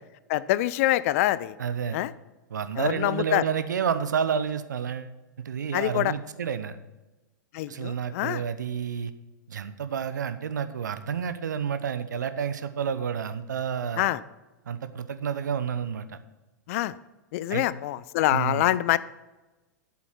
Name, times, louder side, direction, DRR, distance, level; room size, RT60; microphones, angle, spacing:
voice 1, 0.3-1.5 1.9-2.1 2.8-3.4 5.7-6.1 7.5-8.4 14.0-14.2 16.7-16.9 17.3-19.0, left 15 dB, 50° left, 18 dB, 0.5 m, -25 dB
voice 2, 1.6-2.0 2.5-6.8 7.7-9.1 9.5-14.1 14.7-16.2 17.5-17.7 18.3-18.7, right 7 dB, 70° right, 12 dB, 0.8 m, -30 dB
11.5 x 8.5 x 4.4 m, 1.1 s
figure-of-eight pair, 100°, 10 cm